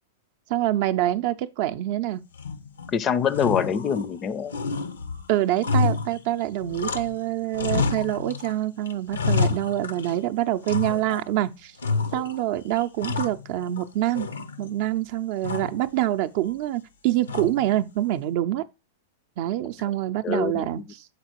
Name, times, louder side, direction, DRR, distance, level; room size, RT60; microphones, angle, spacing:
voice 1, 0.5-2.2 5.3-11.7 12.1-14.3 14.6-18.6 19.4-21.1, right 14 dB, 55° right, 0.5 m, -26 dB
sound 1, 2.4-2.9 3.3-4.2 4.5-7.2 7.5-8.5 8.9-10.2 10.7-11.3 11.8-12.4 12.8-13.8 14.2-14.9 15.4-15.9 17.3-17.8, left 4 dB, 85° left, 0.6 m, -29 dB
voice 2, 2.9-4.6 20.2-20.7, left 7 dB, 30° left, 0.4 m, -24 dB
6.6 x 4.0 x 4.4 m
hypercardioid pair, 110°, 0 cm